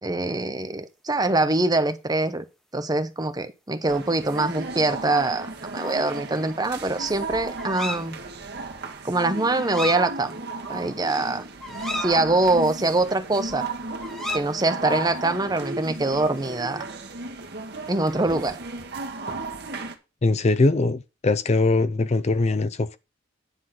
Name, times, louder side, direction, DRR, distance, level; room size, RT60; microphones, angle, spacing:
voice 1, 0.0-2.4 2.7-8.2 9.0-10.4 10.7-11.4 11.9-13.6 14.3-16.9 17.9-18.6, right 2 dB, 20° right, 0.8 m, -24 dB
sound 1, 3.9-19.9, right 3 dB, 55° right, 1.5 m, -35 dB
sound 2, 6.5-7.1 7.6-8.1 9.5-10.0 10.4-10.6 10.9-12.1 14.0-14.4, left 1 dB, ahead, 1.0 m, -33 dB
voice 2, 20.2-23.0, left 3 dB, 35° left, 0.5 m, -21 dB
9.8 x 4.1 x 7.5 m
head